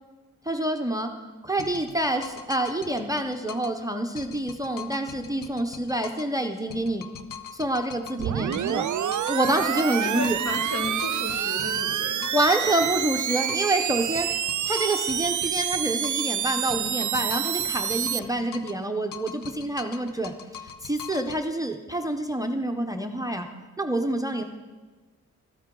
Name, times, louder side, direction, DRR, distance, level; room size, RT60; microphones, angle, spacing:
voice 1, 0.4-1.1 1.4-7.1 7.5-8.9 9.3-10.4 12.3-14.3 14.7-23.5 23.8-24.4, right 1 dB, 10° right, 5 dB, 0.6 m, -27 dB
sound 1, 1.6-3.8 4.2-6.4 6.7-8.9 9.1-13.8 14.2-16.4 16.7-18.8 19.1-21.4, left 8 dB, 80° left, 0.7 m, -42 dB
sound 2, 8.2-18.2, right 10 dB, 65° right, 0.5 m, -28 dB
voice 2, 9.9-12.3, left 2 dB, 55° left, 1 dB, 1.8 m, -34 dB
13.5 x 13.0 x 3.7 m, 1.3 s
wide cardioid pair, 130°, 32 cm